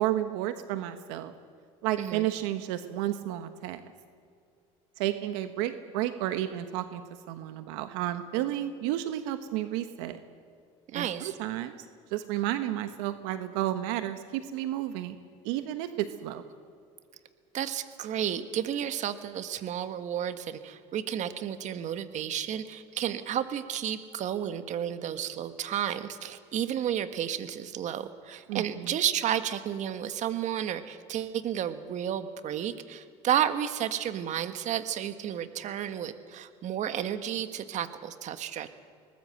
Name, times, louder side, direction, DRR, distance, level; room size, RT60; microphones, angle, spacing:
voice 1, 0.0-1.3 1.8-3.8 5.0-7.0 7.3-10.2 10.9-11.7 12.1-15.2 15.4-16.4 28.5-29.0, right 13 dB, 80° right, 9 dB, 1.3 m, -31 dB
voice 2, 2.0-2.3 10.9-11.3 17.5-38.7, right 10 dB, 50° right, 10 dB, 1.6 m, -32 dB
22.0 x 19.5 x 7.9 m, 2.4 s
supercardioid pair, 90°, 15 cm